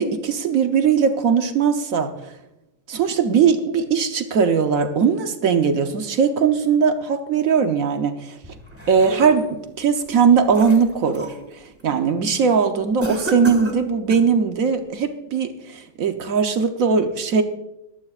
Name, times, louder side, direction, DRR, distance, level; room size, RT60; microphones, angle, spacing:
voice 1, 0.0-2.3 2.9-8.3 8.9-11.3 11.8-17.4, right 6 dB, 55° right, 7 dB, 1.0 m, -19 dB
sound 1, 8.4-9.6 10.1-11.4 11.8-12.1 13.0-14.4, equal, 5° right, 1.6 m, -32 dB
21.0 x 14.0 x 2.4 m, 0.93 s
omnidirectional pair, 2.3 m